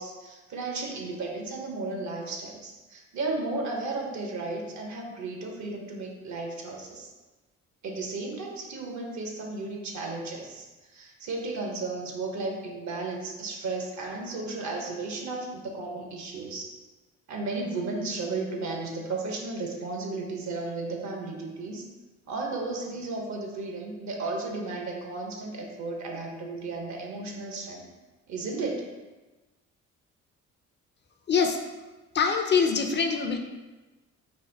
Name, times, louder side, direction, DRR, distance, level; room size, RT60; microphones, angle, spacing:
voice 1, 0.0-7.1 7.8-10.7 10.9-16.7 17.3-21.9 22.3-27.9 28.3-28.8, right 3 dB, 65° right, 2 dB, 0.9 m, -34 dB
voice 2, 31.3-31.6 32.1-33.4, left 5 dB, 40° left, 5 dB, 0.4 m, -24 dB
4.0 x 2.5 x 3.8 m, 1.2 s
cardioid pair, 90°, 30 cm